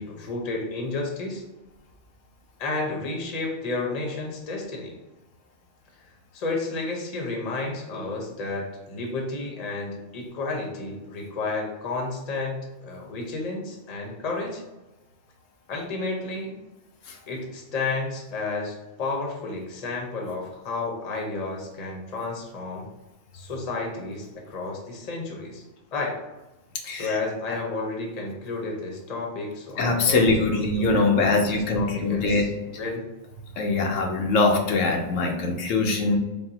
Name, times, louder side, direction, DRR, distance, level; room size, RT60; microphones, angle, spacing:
voice 1, 0.0-1.4 2.6-4.9 6.3-14.6 15.7-16.6 17.3-22.9 23.3-25.6 25.9-26.2 26.9-30.7 31.0-32.5 32.8-33.1, left 3 dB, 40° left, 0 dB, 0.7 m, -31 dB
voice 2, 26.8-27.2 29.8-32.4 33.6-36.1, left 3 dB, 90° left, 2 dB, 1.0 m, -22 dB
4.0 x 2.1 x 3.8 m, 1.1 s
omnidirectional pair, 1.3 m